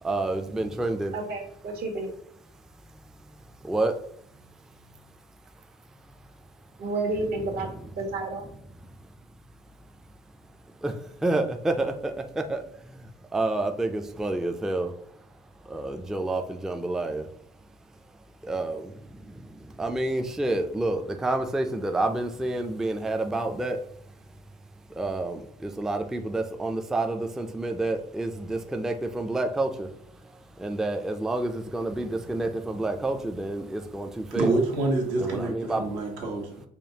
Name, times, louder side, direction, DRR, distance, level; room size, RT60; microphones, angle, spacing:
voice 1, 0.0-1.1 3.6-4.0 10.8-14.9 15.6-17.3 18.4-23.8 25.0-29.9 30.6-34.6 35.2-35.9, right 2 dB, 5° right, 5 dB, 0.3 m, -29 dB
voice 2, 1.1-2.1 6.8-7.7 8.0-8.4, right 2 dB, 70° right, 1 dB, 1.2 m, -30 dB
voice 3, 34.3-36.6, right 2 dB, 85° right, 0 dB, 1.3 m, -27 dB
5.0 x 2.3 x 2.7 m, 0.68 s
cardioid pair, 110°, 17 cm